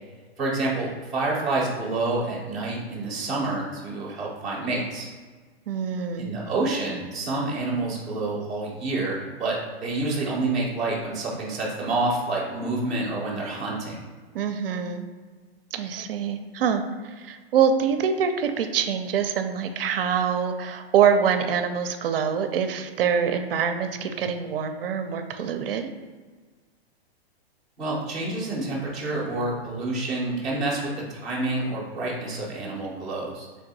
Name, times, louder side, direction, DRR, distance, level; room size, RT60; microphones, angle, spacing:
voice 1, 0.4-5.1 6.2-9.6 9.8-14.0 27.8-30.8 31.1-33.5, right 2 dB, ahead, -11 dB, 0.4 m, -28 dB
voice 2, 5.7-6.3 14.3-15.1 15.7-25.9, right 7 dB, 60° right, 7 dB, 0.5 m, -25 dB
3.4 x 2.6 x 4.0 m, 1.4 s
hypercardioid pair, 160°, 32 cm